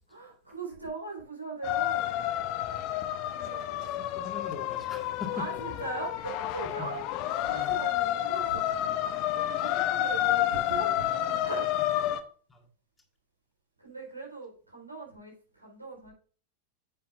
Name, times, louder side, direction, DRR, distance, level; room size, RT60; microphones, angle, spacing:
voice 1, 0.1-2.2 3.3-4.0 5.3-7.0 7.4-12.0 13.8-16.1, right 3 dB, 85° right, 4.3 m, -40 dB
sound 1, 1.6-12.2, left 13 dB, 40° left, 0.9 m, -30 dB
voice 2, 4.0-5.4 6.8-6.9 7.5-7.8 9.6-9.9 12.5-12.6, left 4 dB, 15° left, 1.8 m, -42 dB
9.8 x 7.6 x 2.5 m
figure-of-eight pair, 90°, 0 cm